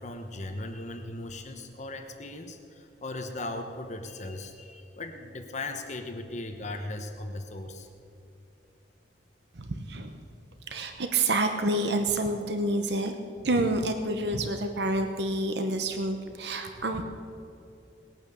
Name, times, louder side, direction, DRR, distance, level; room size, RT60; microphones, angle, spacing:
voice 1, 0.0-7.9, left 2 dB, 40° left, 5 dB, 1.0 m, -38 dB
voice 2, 9.6-10.2 10.7-13.1 13.4-17.0, right 2 dB, 65° right, 6 dB, 0.9 m, -28 dB
19.5 x 9.0 x 6.9 m, 2.6 s
head